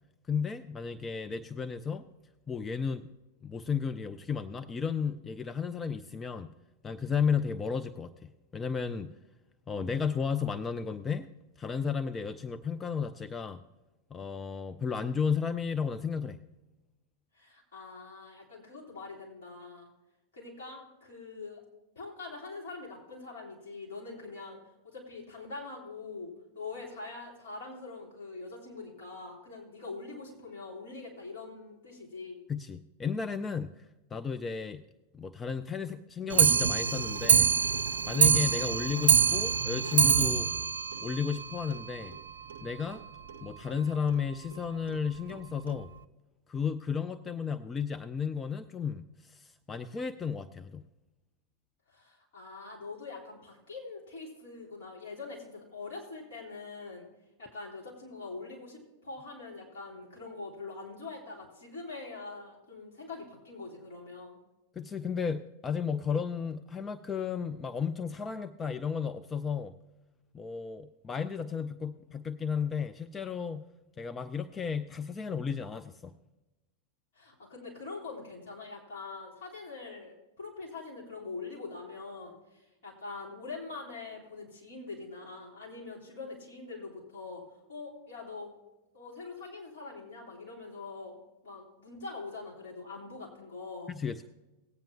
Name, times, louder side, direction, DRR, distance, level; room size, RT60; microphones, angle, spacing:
voice 1, 0.3-2.0 2.5-3.1 3.4-6.5 6.8-9.1 9.7-11.3 11.6-13.6 14.1-16.4 32.5-33.9 34.1-34.8 35.1-37.5 38.1-40.5 41.0-42.2 42.6-43.0 43.4-45.9 46.5-50.8 64.8-69.7 70.3-73.7 74.0-76.1 93.9-94.2, left 6 dB, 20° left, 10 dB, 0.4 m, -33 dB
voice 2, 17.3-19.9 20.3-21.6 22.0-24.6 24.8-32.4 51.9-57.1 57.4-64.4 77.1-87.4 87.7-88.5 88.9-91.2 91.4-93.9, left 3 dB, 60° left, -3 dB, 3.8 m, -43 dB
Clock, 36.3-41.8 42.1-42.2 42.5-42.6 42.9-43.0 43.3-43.4 44.1-44.2 44.9-45.0 45.7-45.8, right 7 dB, 60° right, 0.5 m, -25 dB
18.0 x 8.8 x 2.9 m, 1.1 s
figure-of-eight pair, 90°, 0 cm